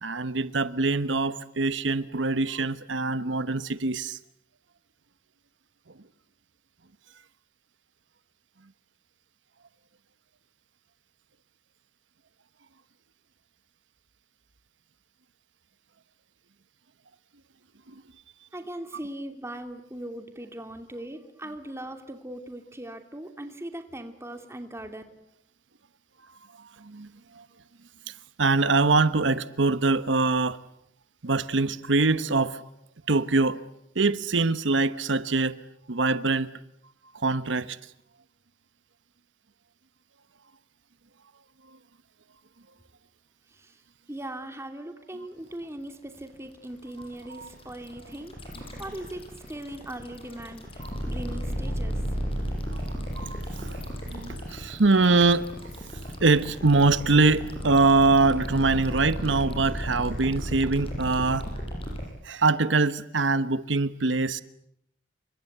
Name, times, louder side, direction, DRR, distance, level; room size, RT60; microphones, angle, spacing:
voice 1, 0.0-4.2 17.9-18.0 26.8-27.1 27.4-27.5 28.1-28.2 28.4-30.6 31.2-32.6 33.1-33.6 33.9-35.5 35.9-36.5 37.1-37.8 47.4-47.5 52.7-55.5 56.2-61.5 62.2-64.4, right 3 dB, 85° right, 1.1 m, -23 dB
voice 2, 18.5-25.0 43.5-43.8 44.1-48.4 48.8-52.2, right 1 dB, 15° right, 2.8 m, -39 dB
sound 1, 45.4-62.0, equal, 30° left, 7.9 m, -34 dB
29.0 x 25.0 x 8.1 m
head